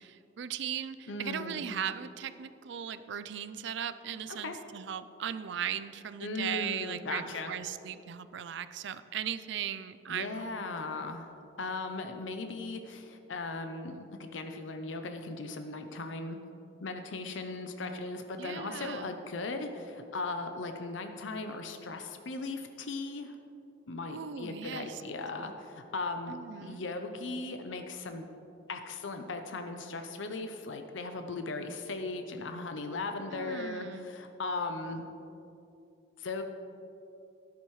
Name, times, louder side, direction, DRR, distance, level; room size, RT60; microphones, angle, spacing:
voice 1, 0.0-10.5 18.4-19.1 24.1-25.0 26.3-26.8 33.3-34.1, right 9 dB, 70° right, 13 dB, 0.4 m, -38 dB
voice 2, 1.1-1.6 4.4-4.6 6.2-7.5 10.1-11.3 11.6-16.4 16.8-23.4 23.9-28.3 28.7-35.1 36.2-36.4, left 3 dB, 80° left, 6 dB, 0.7 m, -38 dB
13.0 x 10.5 x 3.2 m, 2.8 s
head